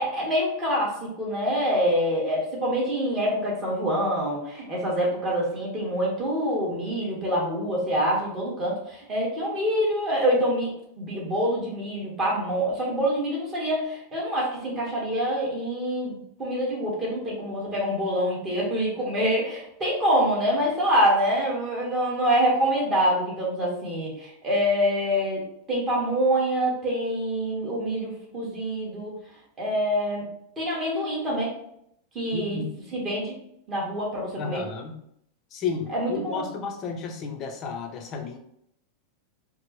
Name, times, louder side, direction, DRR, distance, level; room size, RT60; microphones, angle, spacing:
voice 1, 0.0-10.7 11.0-29.1 29.6-30.3 30.6-31.5 32.1-32.6 32.9-33.3 33.7-34.6 35.9-36.4, equal, 20° right, -4 dB, 1.3 m, -26 dB
voice 2, 32.3-32.7 34.4-35.0 35.5-38.4, left 5 dB, 30° left, 4 dB, 0.5 m, -32 dB
4.3 x 2.0 x 3.0 m, 0.73 s
supercardioid pair, 155°, 0 cm